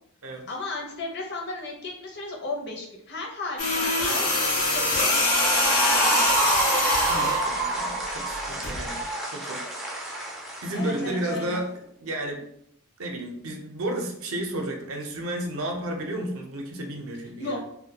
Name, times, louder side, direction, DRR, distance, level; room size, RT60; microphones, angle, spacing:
voice 1, 0.5-6.7 10.7-11.6 17.4-17.6, left 2 dB, 50° left, 0 dB, 0.6 m, -35 dB
sound 1, 3.6-7.4 8.6-8.8, left 2 dB, 85° left, 0.9 m, -24 dB
sound 2, 5.0-11.3, right 2 dB, ahead, 0.3 m, -28 dB
voice 2, 7.1-9.0 9.3-9.7 10.6-11.7 12.0-12.4 13.0-17.6, right 1 dB, 65° right, 2 dB, 0.5 m, -32 dB
2.2 x 2.1 x 2.8 m, 0.71 s
head